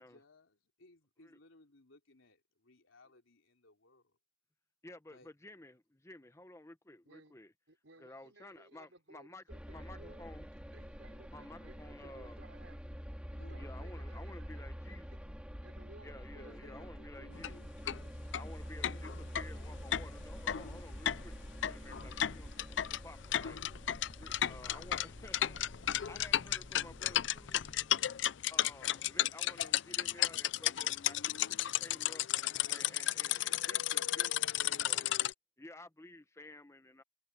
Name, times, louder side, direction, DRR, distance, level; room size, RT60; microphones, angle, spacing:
voice 1, 0.0-4.2 5.1-5.3 13.4-13.7 16.2-17.7 18.8-19.1 24.4-25.6 26.1-26.2, left 2 dB, 80° left, 3.8 m, -61 dB
voice 2, 4.8-7.5 8.0-10.5 11.3-12.4 13.6-15.2 16.0-17.7 18.4-25.6 26.1-27.7 28.5-32.3 32.7-35.1 35.6-37.0, left 2 dB, 15° left, 0.9 m, -53 dB
voice 3, 7.7-10.4 10.7-15.0 15.6-16.7, right 2 dB, 70° right, 5.5 m, -60 dB
sound 1, 9.5-27.9, equal, 5° right, 2.5 m, -47 dB
sound 2, 17.3-17.5 17.9-18.0 18.3-18.4 18.8-35.3, left 12 dB, 65° left, 0.5 m, -33 dB
head